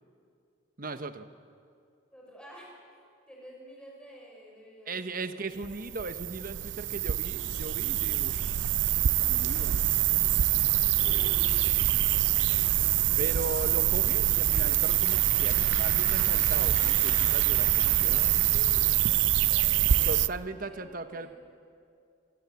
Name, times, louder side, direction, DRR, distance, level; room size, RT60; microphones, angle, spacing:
voice 1, 0.8-1.3 4.9-8.5 9.2-9.8 13.2-19.0 20.0-21.3, right 3 dB, 45° right, 10 dB, 1.1 m, -38 dB
voice 2, 2.1-2.7 3.3-5.9 11.0-11.7 20.3-21.4, right 1 dB, 5° left, -2 dB, 6.4 m, -49 dB
sound 1, 5.6-20.3, right 12 dB, 65° right, 0.5 m, -25 dB
Applause / Crowd, 13.6-19.7, left 2 dB, 55° left, 4.1 m, -44 dB
27.5 x 18.0 x 8.3 m, 2.4 s
head